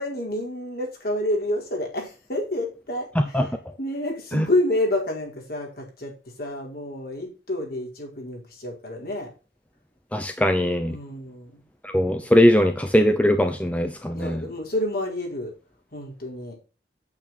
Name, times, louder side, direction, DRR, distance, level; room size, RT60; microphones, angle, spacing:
voice 1, 0.0-9.3 10.9-11.6 12.2-12.3 14.1-15.5 15.9-16.5, left 1 dB, 50° left, 4.7 m, -29 dB
voice 2, 10.1-11.0 11.9-14.4, left 1 dB, 5° left, 0.8 m, -20 dB
9.0 x 8.7 x 4.3 m
head